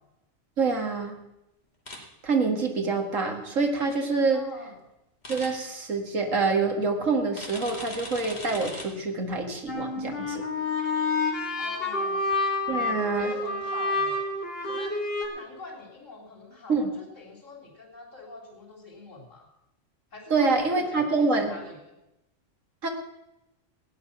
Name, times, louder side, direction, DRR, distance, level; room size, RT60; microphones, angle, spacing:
voice 1, 0.6-1.1 2.2-4.4 5.3-10.5 12.7-13.3 16.7-16.9 20.3-21.6 22.8-22.9, right 4 dB, 85° right, 4 dB, 2.2 m, -26 dB
sound 1, 1.9-2.0 5.2-5.5 7.4-8.8, left 1 dB, 35° left, 2.6 m, -39 dB
voice 2, 4.3-4.8 11.6-12.3 12.7-14.2 14.6-19.5 20.1-22.0, left 3 dB, 75° left, -3 dB, 3.8 m, -44 dB
sound 2, 9.7-15.3, left 2 dB, 50° left, 2.3 m, -28 dB
16.5 x 9.7 x 5.9 m, 0.91 s
omnidirectional pair, 1.3 m